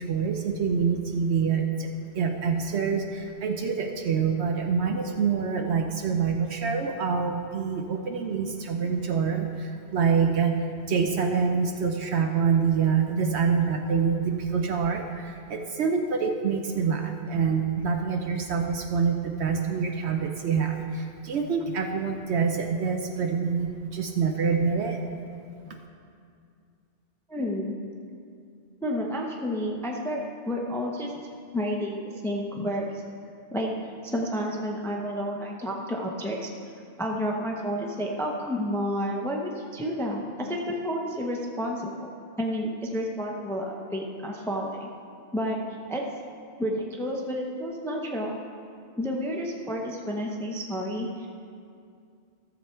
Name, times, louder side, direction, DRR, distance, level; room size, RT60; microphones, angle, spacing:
voice 1, 0.0-1.9 2.1-25.0 25.7-25.8, right 6 dB, 70° right, 3 dB, 0.9 m, -26 dB
voice 2, 27.3-27.8 28.8-31.1 31.5-33.0 33.5-33.7 34.0-36.5 37.0-42.1 42.4-44.9 45.3-45.6 45.9-46.0 46.6-48.4 49.0-51.3, equal, 5° left, 0 dB, 0.7 m, -30 dB
14.0 x 7.3 x 4.4 m, 2.4 s
omnidirectional pair, 1.2 m